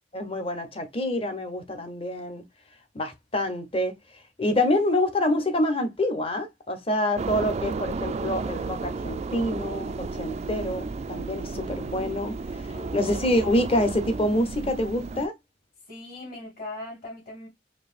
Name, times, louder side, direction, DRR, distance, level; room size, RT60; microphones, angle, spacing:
voice 1, 0.1-2.4 2.9-3.9 4.4-15.3, left 1 dB, 30° left, 0.8 m, -27 dB
sound 1, 7.2-15.3, right 3 dB, 35° right, 0.3 m, -33 dB
voice 2, 15.9-17.5, left 2 dB, 50° left, 2.5 m, -39 dB
4.6 x 2.8 x 2.4 m
head